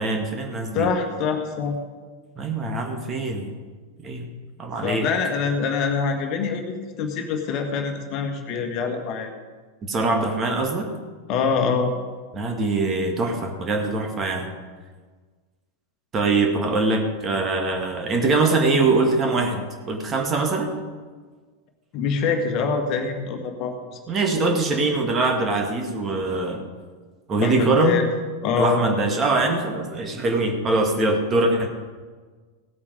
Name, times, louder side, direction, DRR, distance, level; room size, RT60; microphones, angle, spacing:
voice 1, 0.0-0.9 2.4-3.5 4.0-4.3 4.6-5.1 9.8-10.9 12.3-14.5 16.1-20.8 24.1-26.7 27.3-28.0 28.6-31.7, right 3 dB, 25° right, 3 dB, 2.0 m, -23 dB
voice 2, 0.7-1.8 4.8-9.3 11.3-11.9 21.9-23.7 27.4-28.0 28.4-28.8, left 5 dB, 40° left, 4 dB, 1.6 m, -24 dB
16.5 x 8.5 x 5.2 m, 1.4 s
figure-of-eight pair, 90°, 0 cm